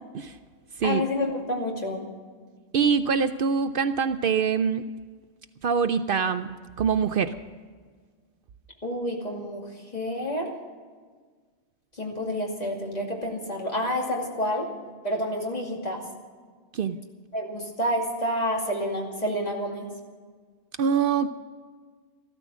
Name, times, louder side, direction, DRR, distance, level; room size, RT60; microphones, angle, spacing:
voice 1, 0.8-2.1 8.8-9.7 9.9-10.5 12.0-14.7 15.0-16.0 17.3-19.9, equal, 40° left, -1 dB, 2.6 m, -29 dB
voice 2, 2.7-4.9 5.6-7.3 16.7-17.0 20.8-21.3, right 6 dB, 60° right, 11 dB, 0.7 m, -24 dB
14.5 x 13.5 x 6.2 m, 1.6 s
omnidirectional pair, 1.1 m